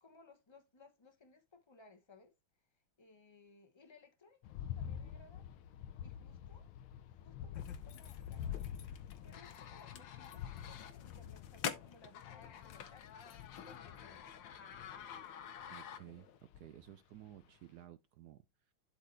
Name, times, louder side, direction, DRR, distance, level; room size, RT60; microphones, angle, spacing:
voice 1, 0.0-2.3 2.7-5.5 6.0-6.7 7.1-8.9 9.2-13.1 13.6-14.4, left 3 dB, 30° left, 0.5 m, -62 dB
sound 1, 4.4-15.8 16.5-16.9 17.3-17.4, left 9 dB, 90° left, 1.7 m, -47 dB
sound 2, 7.5-16.4, left 8 dB, 65° left, 1.4 m, -48 dB
voice 2, 15.7-18.7, right 12 dB, 80° right, 0.9 m, -55 dB
12.0 x 4.2 x 3.3 m
omnidirectional pair, 2.3 m